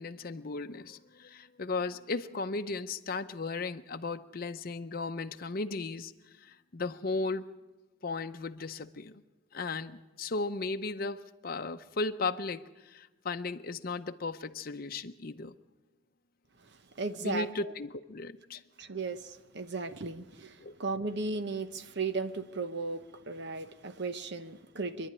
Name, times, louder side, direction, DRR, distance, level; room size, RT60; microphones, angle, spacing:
voice 1, 0.0-6.1 6.4-7.5 8.0-9.2 9.5-15.5 17.2-18.6 20.6-20.7, left 3 dB, 50° left, 8 dB, 0.7 m, -36 dB
voice 2, 17.0-17.5 18.8-25.1, right 3 dB, 60° right, 10 dB, 1.0 m, -36 dB
25.0 x 11.0 x 9.7 m, 1.1 s
head